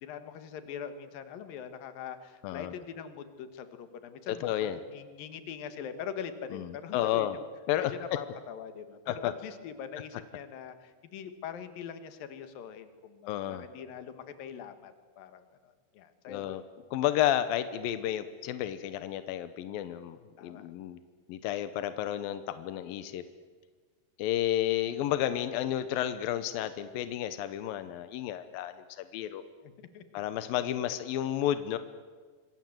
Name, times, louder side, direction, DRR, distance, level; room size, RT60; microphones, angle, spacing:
voice 1, 0.0-7.4 7.8-16.6 20.4-20.7 29.6-30.2 30.7-31.0, left 8 dB, 60° left, 10 dB, 2.7 m, -43 dB
voice 2, 4.3-4.8 6.5-6.7 6.9-7.4 7.7-7.9 9.1-9.3 13.3-13.6 16.3-16.6 16.9-21.0 21.3-23.2 24.2-29.4 30.1-31.8, left 12 dB, 80° left, 12 dB, 2.1 m, -31 dB
26.0 x 23.5 x 7.8 m, 1.5 s
omnidirectional pair, 5.4 m